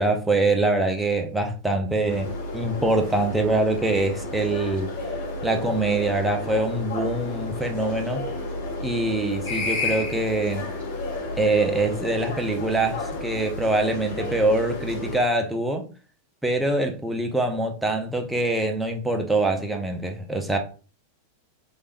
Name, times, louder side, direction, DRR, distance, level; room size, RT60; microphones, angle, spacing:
voice 1, 0.0-4.9 5.4-8.2 8.8-10.7 11.4-15.9 16.4-20.6, right 2 dB, 5° right, 0.6 m, -24 dB
sound 1, 2.1-15.2, left 2 dB, 50° left, 1.7 m, -31 dB
3.3 x 3.2 x 2.5 m
figure-of-eight pair, 90°, 0 cm